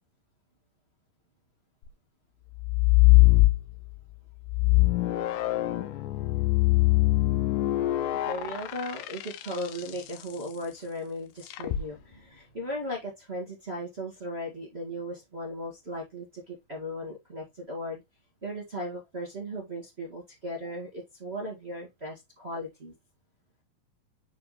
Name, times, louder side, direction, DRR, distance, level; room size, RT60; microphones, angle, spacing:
sound 1, 2.6-4.0 4.5-10.0 11.5-11.8, left 20 dB, 80° left, 2.0 m, -22 dB
voice 1, 8.1-18.0 18.4-22.9, equal, 35° right, 1.0 m, -37 dB
5.8 x 5.0 x 3.7 m
omnidirectional pair, 4.3 m